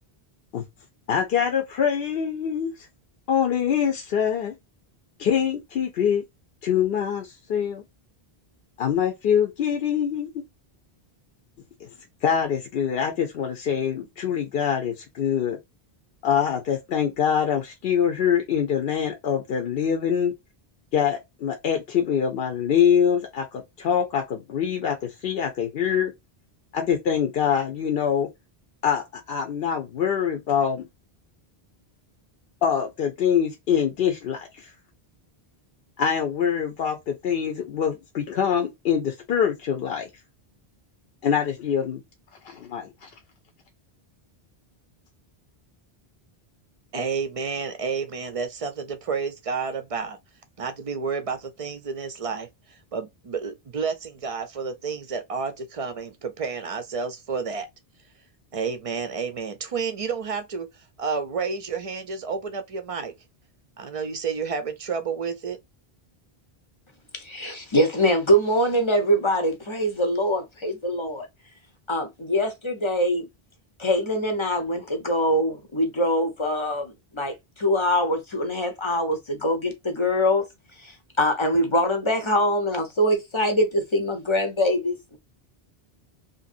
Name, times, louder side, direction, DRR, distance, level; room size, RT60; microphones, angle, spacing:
voice 1, 1.1-2.9 3.3-4.5 5.2-6.2 6.6-7.8 8.8-10.3 11.8-11.9 12.2-15.6 16.2-20.3 20.9-26.1 26.7-28.3 28.8-30.9 32.6-34.7 36.0-40.1 41.2-42.0 42.4-43.1, left 8 dB, 70° left, 0.8 m, -24 dB
voice 2, 46.9-50.2 50.6-57.7 58.5-60.7 61.0-63.1 63.8-65.6, right 5 dB, 50° right, 0.4 m, -30 dB
voice 3, 67.2-71.3 71.9-73.3 73.8-80.4 80.8-85.2, equal, 35° left, 0.6 m, -23 dB
2.9 x 2.6 x 2.4 m
omnidirectional pair, 1.0 m